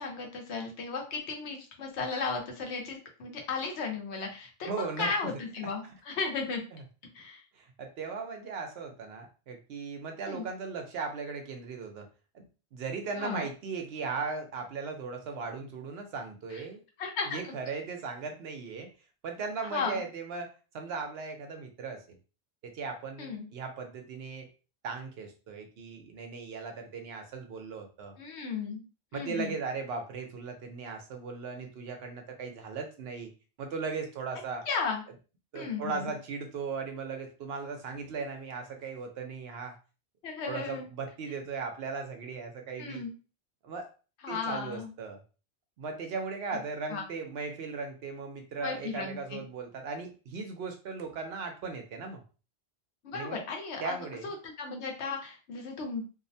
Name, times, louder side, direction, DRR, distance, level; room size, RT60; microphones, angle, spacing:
voice 1, 0.0-6.6 7.1-7.4 10.3-10.5 13.2-13.5 16.5-16.6 17.0-17.5 19.7-20.0 23.2-23.5 28.2-28.8 29.1-29.6 34.7-35.0 35.5-36.1 40.2-40.9 42.8-43.1 44.2-44.9 46.5-46.6 46.9-47.0 48.6-49.4 53.0-53.9 54.2-56.0, left 4 dB, 80° left, 2 dB, 1.0 m, -35 dB
voice 2, 4.7-5.1 6.7-6.8 7.5-12.1 12.3-12.4 12.7-16.8 17.3-18.9 19.2-22.2 22.6-24.5 24.8-28.2 29.1-33.3 33.6-34.7 35.5-39.8 40.5-43.0 43.6-43.9 44.3-45.2 45.8-52.2 53.1-53.4 53.8-54.3, right 4 dB, 70° right, 4 dB, 0.8 m, -37 dB
2.5 x 2.1 x 2.6 m, 0.35 s
omnidirectional pair, 1.1 m